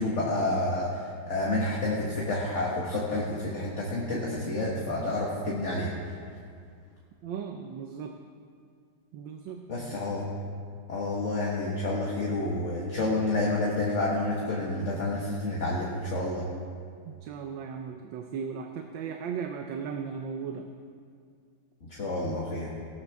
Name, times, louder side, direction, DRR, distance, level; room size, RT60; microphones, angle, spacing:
voice 1, 0.0-5.9 9.7-10.3 10.9-16.5 21.9-22.7, left 2 dB, 40° left, -4 dB, 1.8 m, -29 dB
voice 2, 7.2-8.2 9.1-10.0 17.1-20.7, right 6 dB, 80° right, 4 dB, 1.5 m, -37 dB
18.5 x 13.0 x 3.6 m, 2.2 s
omnidirectional pair, 2.0 m